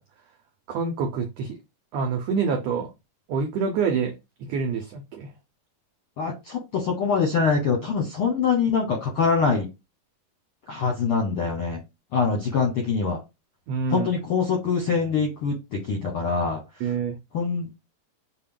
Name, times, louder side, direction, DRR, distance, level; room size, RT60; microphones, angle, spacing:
voice 1, 0.7-1.6 1.9-2.9 3.3-4.2 4.5-5.3 13.7-14.1 16.8-17.2, right 5 dB, 90° right, 4 dB, 1.4 m, -26 dB
voice 2, 6.2-9.7 10.7-11.8 12.1-13.2 13.9-16.9 17.3-17.8, left 5 dB, 70° left, 0 dB, 1.3 m, -24 dB
6.4 x 2.2 x 3.6 m, 0.23 s
omnidirectional pair, 3.8 m